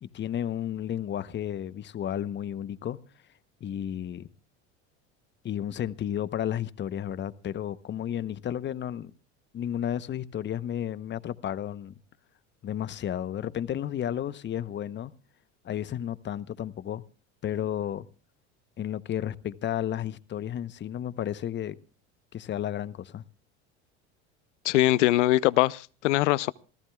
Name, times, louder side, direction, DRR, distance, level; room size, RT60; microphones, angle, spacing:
voice 1, 0.0-3.0 3.6-4.3 5.4-9.1 9.5-11.9 12.6-15.1 15.6-17.0 17.4-18.1 18.8-21.8 22.3-23.2, left 10 dB, 30° left, 0.9 m, -32 dB
voice 2, 24.6-26.5, left 16 dB, 80° left, 0.6 m, -22 dB
28.0 x 15.0 x 2.3 m
hypercardioid pair, 90°, 35 cm